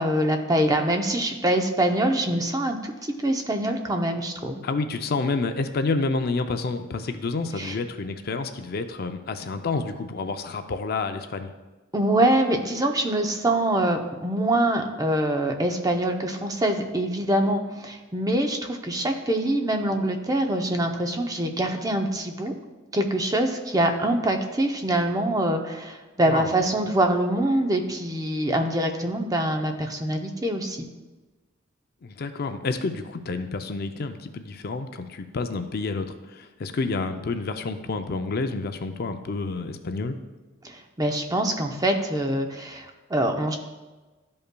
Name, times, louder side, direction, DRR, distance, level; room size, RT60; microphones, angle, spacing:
voice 1, 0.0-2.9 3.2-4.6 7.6-7.8 11.9-22.5 22.9-30.9 40.6-43.6, right 1 dB, 20° right, 4 dB, 0.6 m, -24 dB
voice 2, 4.6-11.5 26.3-26.5 32.0-40.2, left 3 dB, 50° left, 8 dB, 0.4 m, -29 dB
12.5 x 5.4 x 2.2 m, 1.2 s
head